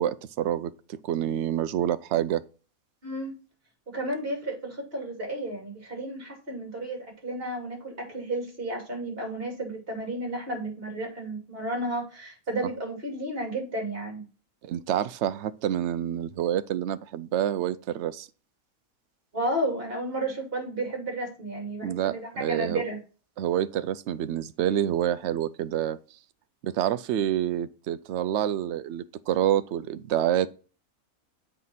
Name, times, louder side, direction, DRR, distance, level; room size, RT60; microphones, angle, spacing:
voice 1, 0.0-2.4 14.6-18.3 21.8-22.8 23.4-26.0 26.6-30.5, right 11 dB, 65° right, 0.8 m, -27 dB
voice 2, 3.0-3.3 3.9-14.2 19.3-23.0, right 1 dB, 40° right, 2.8 m, -32 dB
7.7 x 4.7 x 4.1 m
omnidirectional pair, 1.5 m